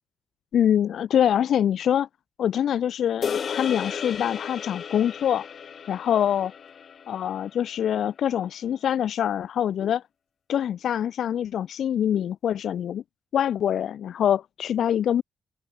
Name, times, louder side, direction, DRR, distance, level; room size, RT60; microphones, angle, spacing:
voice 1, 0.5-2.1 2.4-5.5 5.9-6.5 7.1-10.0 10.5-13.0 13.3-15.2, left 9 dB, 70° left, 0.5 m, -24 dB
sound 1, 3.2-7.7, left 7 dB, 50° left, 1.1 m, -34 dB
open air
cardioid pair, 120°, 0 cm